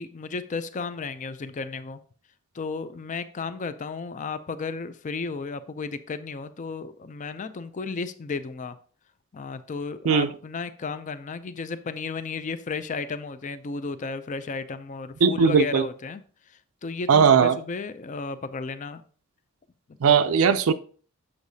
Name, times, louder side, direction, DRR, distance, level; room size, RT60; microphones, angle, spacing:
voice 1, 0.0-2.0 2.5-8.8 9.3-19.0 20.1-20.2, left 4 dB, 35° left, 0.4 m, -34 dB
voice 2, 15.2-15.8 17.1-17.6 20.0-20.7, right 6 dB, 70° right, 0.4 m, -18 dB
7.1 x 6.5 x 2.7 m
head